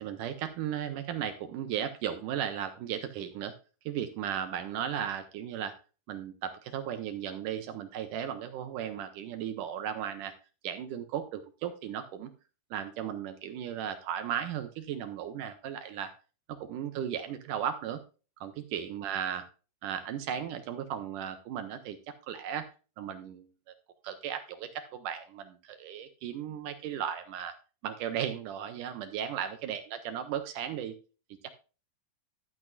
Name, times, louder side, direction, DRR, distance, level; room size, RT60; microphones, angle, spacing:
voice 1, 0.0-3.5 3.9-5.7 6.1-10.3 10.6-12.3 12.7-16.1 16.6-18.0 18.4-19.4 19.8-22.7 23.0-23.5 24.0-27.6 27.8-31.0 31.4-31.5, right 9 dB, 75° right, 8 dB, 2.0 m, -36 dB
12.0 x 8.6 x 2.3 m, 0.34 s
omnidirectional pair, 4.4 m